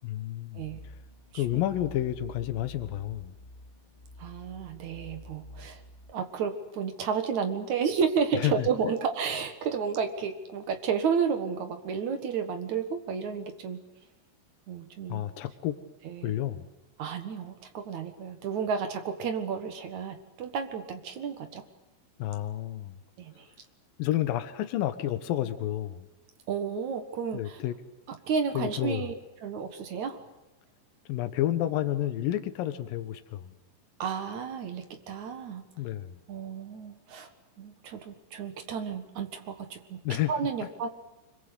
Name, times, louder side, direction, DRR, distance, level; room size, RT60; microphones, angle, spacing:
voice 1, 0.0-0.6 1.3-3.3 8.3-8.9 15.1-15.8 16.2-16.7 22.2-23.0 24.0-26.1 27.3-27.8 28.5-29.1 31.1-33.5 35.8-36.2 40.0-40.3, left 13 dB, 90° left, 11 dB, 1.9 m, -30 dB
sound 1, 0.6-6.1, left 1 dB, 10° left, 2.6 m, -49 dB
voice 2, 4.2-5.8 6.1-13.8 14.7-15.2 16.1-16.3 17.0-21.6 23.2-23.4 26.5-27.6 28.1-29.1 29.4-30.2 34.0-35.6 36.3-37.3 37.6-40.0 40.3-40.9, right 6 dB, 65° right, 7 dB, 1.9 m, -32 dB
26.0 x 23.0 x 8.3 m, 0.98 s
omnidirectional pair, 5.6 m